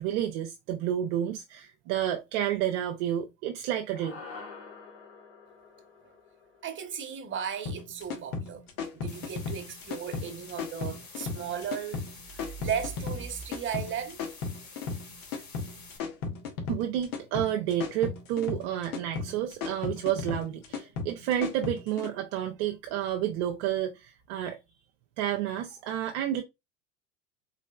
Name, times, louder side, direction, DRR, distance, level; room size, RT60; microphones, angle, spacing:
voice 1, 0.0-4.2 16.7-24.6 25.2-26.4, right 11 dB, 45° right, 0.7 m, -30 dB
sound 1, 3.9-8.4, left 4 dB, 75° left, 1.5 m, -48 dB
voice 2, 6.6-8.6 8.9-12.0 12.3-14.2, right 8 dB, 25° right, 1.0 m, -35 dB
sound 2, 7.7-22.1, left 4 dB, 60° left, 1.2 m, -35 dB
sound 3, 9.1-16.0, left 4 dB, 35° left, 2.0 m, -49 dB
3.9 x 3.2 x 2.3 m
figure-of-eight pair, 85°, 50 cm